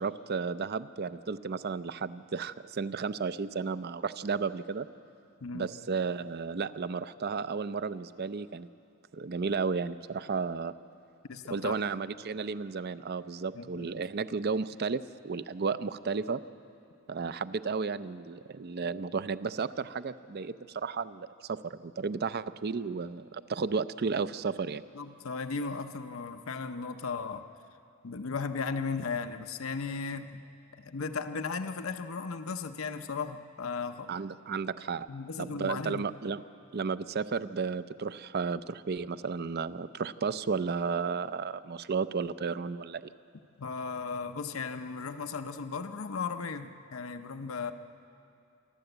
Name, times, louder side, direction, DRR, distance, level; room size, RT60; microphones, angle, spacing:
voice 1, 0.0-4.9 5.5-8.7 9.1-10.7 11.5-16.4 17.1-24.8 34.1-35.1 35.4-36.4 36.7-43.1, right 5 dB, 50° right, 14 dB, 0.5 m, -33 dB
voice 2, 5.4-5.7 11.3-11.8 13.5-13.9 24.9-27.5 28.0-30.4 30.8-34.2 35.1-36.1 43.6-47.7, left 4 dB, 75° left, 8 dB, 0.8 m, -36 dB
27.0 x 12.0 x 8.0 m, 2.6 s
head